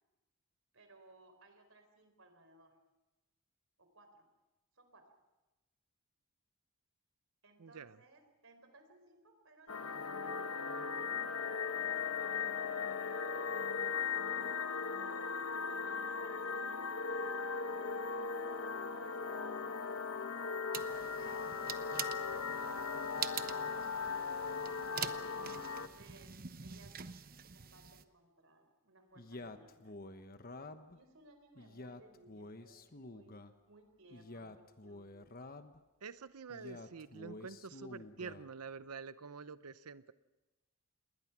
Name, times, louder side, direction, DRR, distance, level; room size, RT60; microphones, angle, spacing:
voice 1, 0.7-2.8 3.8-4.3 4.7-5.1 7.4-10.5 10.7-13.9 15.7-18.1 18.9-23.0 25.5-26.3 26.6-27.0 27.5-29.9 30.6-33.4 33.7-35.1, right 2 dB, 60° right, 6 dB, 4.3 m, -62 dB
voice 2, 7.6-8.0 36.0-40.1, right 5 dB, 85° right, 14 dB, 0.7 m, -47 dB
sound 1, 9.7-25.9, left 5 dB, 70° left, 1.1 m, -38 dB
sound 2, 20.7-28.0, right 8 dB, 40° right, 0.9 m, -45 dB
Male speech man speaking, 29.2-31.0 31.6-33.5 34.1-35.8 36.5-38.5, left 2 dB, 40° left, 1.1 m, -50 dB
28.0 x 21.0 x 6.1 m, 1.1 s
head